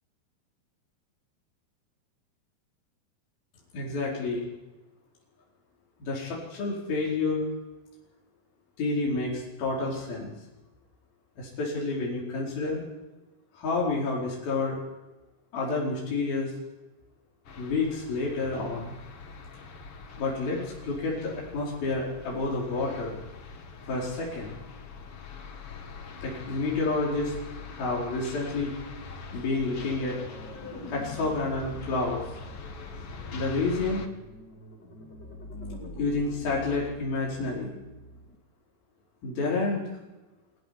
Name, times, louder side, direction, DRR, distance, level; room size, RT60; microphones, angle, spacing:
voice 1, 3.7-4.5 6.0-7.5 8.8-10.3 11.4-12.8 13.5-14.8 15.5-16.5 17.6-18.9 20.2-23.2 23.9-24.6 26.2-27.3 27.7-28.7 29.3-30.2 30.9-32.2 33.3-34.1 36.0-37.7 39.2-39.8, left 3 dB, 65° left, -5 dB, 6.5 m, -29 dB
sound 1, 17.4-34.1, left 4 dB, 45° left, 2.3 m, -44 dB
sound 2, 29.6-38.4, left 1 dB, 30° left, 2.9 m, -44 dB
24.5 x 16.5 x 9.6 m, 1.1 s
omnidirectional pair, 4.6 m